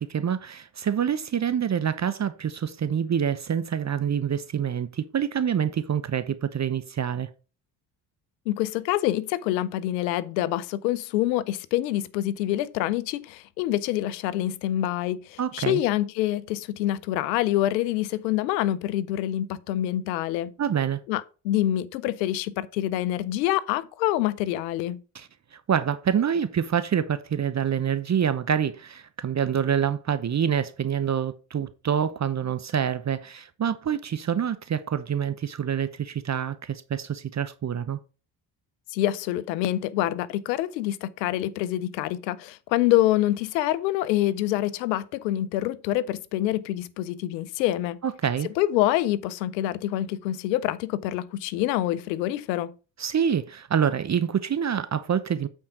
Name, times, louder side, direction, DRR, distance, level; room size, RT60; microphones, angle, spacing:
voice 1, 0.0-7.3 15.4-15.8 20.6-21.0 25.1-25.3 25.5-38.0 48.0-48.5 53.0-55.5, right 8 dB, 35° right, 0.8 m, -26 dB
voice 2, 8.5-20.5 21.1-25.0 38.9-48.0 48.6-52.7, left 14 dB, 85° left, 0.7 m, -26 dB
8.6 x 4.6 x 5.0 m
hypercardioid pair, 50°, 49 cm